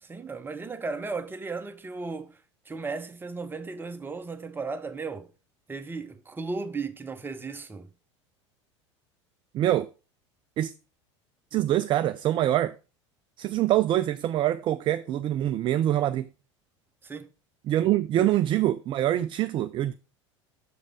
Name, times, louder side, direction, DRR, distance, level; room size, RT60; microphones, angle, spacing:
voice 1, 0.0-2.4 2.7-5.3 5.7-7.9 17.0-17.3 18.2-18.3, right 4 dB, 15° right, 0.9 m, -35 dB
voice 2, 9.5-9.9 10.6-10.7 11.5-12.8 13.4-16.3 17.7-19.9, right 13 dB, 30° right, 0.4 m, -25 dB
7.0 x 5.2 x 5.0 m
figure-of-eight pair, 75°, 16 cm